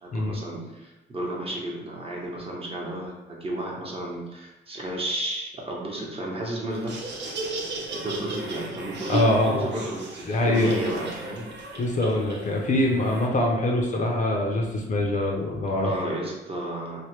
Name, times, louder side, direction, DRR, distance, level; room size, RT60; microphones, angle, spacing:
voice 1, 0.0-6.9 8.0-11.5 15.8-17.0, right 1 dB, 30° right, -3 dB, 0.9 m, -32 dB
Laughter, 6.7-13.3, right 2 dB, 65° right, 0.8 m, -35 dB
voice 2, 9.1-9.7 10.3-10.8 11.8-15.9, left 1 dB, 40° left, -1 dB, 0.6 m, -24 dB
3.2 x 2.1 x 3.1 m, 1.0 s
cardioid pair, 90°, 20 cm